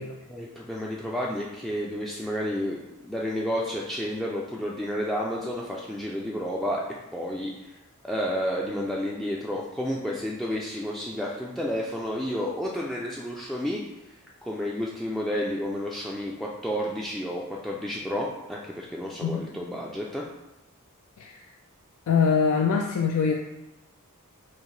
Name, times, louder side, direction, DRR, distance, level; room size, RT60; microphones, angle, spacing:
voice 1, 0.3-2.8 3.0-6.8 7.1-7.7 8.0-13.8 14.4-20.2, equal, ahead, -4 dB, 0.3 m, -31 dB
voice 2, 22.1-23.3, left 6 dB, 80° left, 1 dB, 0.4 m, -23 dB
4.5 x 2.9 x 3.1 m, 0.97 s
head